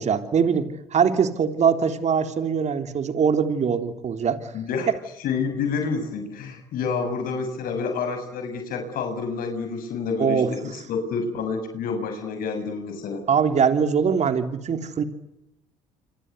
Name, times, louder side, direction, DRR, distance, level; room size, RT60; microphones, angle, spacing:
voice 1, 0.0-4.4 10.2-10.5 13.3-15.0, right 6 dB, 50° right, 8 dB, 3.6 m, -22 dB
voice 2, 4.5-4.9 5.2-13.2, left 5 dB, 70° left, 6 dB, 7.0 m, -28 dB
27.0 x 26.5 x 8.2 m, 0.84 s
supercardioid pair, 75°, 15 cm